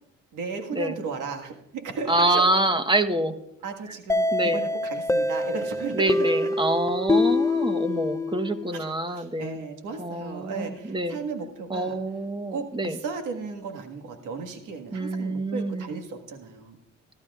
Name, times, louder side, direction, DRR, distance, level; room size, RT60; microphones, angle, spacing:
voice 1, 0.3-2.5 3.6-6.5 8.7-12.0 12.5-16.8, right 4 dB, 90° right, 4 dB, 1.6 m, -35 dB
voice 2, 2.1-3.4 4.3-4.6 5.9-9.6 10.0-11.2 11.7-13.0 14.9-16.0, right 1 dB, 15° right, 9 dB, 1.0 m, -26 dB
sound 1, 4.1-8.8, left 2 dB, 10° left, 0.6 m, -25 dB
20.0 x 12.0 x 2.4 m, 0.83 s
cardioid pair, 90°, 30 cm